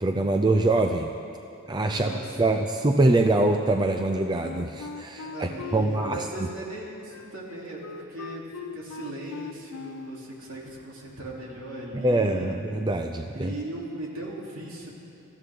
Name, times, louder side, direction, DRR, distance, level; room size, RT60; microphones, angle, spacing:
voice 1, 0.0-1.1 1.7-6.3 11.9-13.5, right 2 dB, 20° right, 5 dB, 0.4 m, -24 dB
voice 2, 1.8-2.4 5.2-12.6 13.3-14.9, right 1 dB, 65° right, -4 dB, 3.0 m, -38 dB
Wind instrument woodwind instrument, 4.4-10.3, left 5 dB, 85° left, 0.5 m, -40 dB
22.5 x 14.5 x 3.7 m, 2.7 s
head